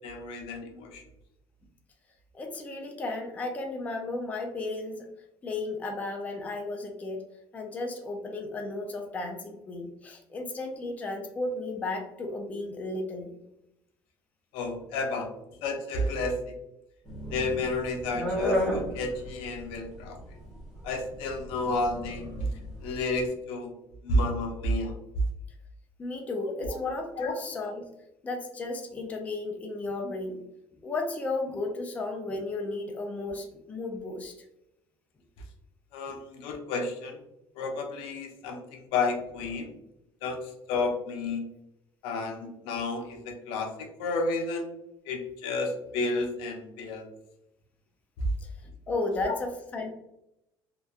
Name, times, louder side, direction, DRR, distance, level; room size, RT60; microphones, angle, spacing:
voice 1, 0.0-1.0 14.5-15.3 15.6-16.5 17.3-20.2 20.8-22.3 22.8-23.7 24.0-24.9 26.6-26.8 27.2-27.3 35.9-37.2 37.6-39.7 40.2-41.5 42.0-44.7 45.1-47.1 49.3-49.4, left 2 dB, 85° left, 3 dB, 0.5 m, -31 dB
voice 2, 2.3-5.1 5.4-7.2 7.5-13.4 26.0-27.9 28.2-30.4 30.8-34.3 36.1-36.2 48.4-49.9, left 2 dB, 15° left, 3 dB, 0.3 m, -34 dB
sound 1, 17.1-23.2, equal, 5° right, 0.8 m, -33 dB
2.8 x 2.2 x 2.3 m, 0.85 s
cardioid pair, 155°, 9 cm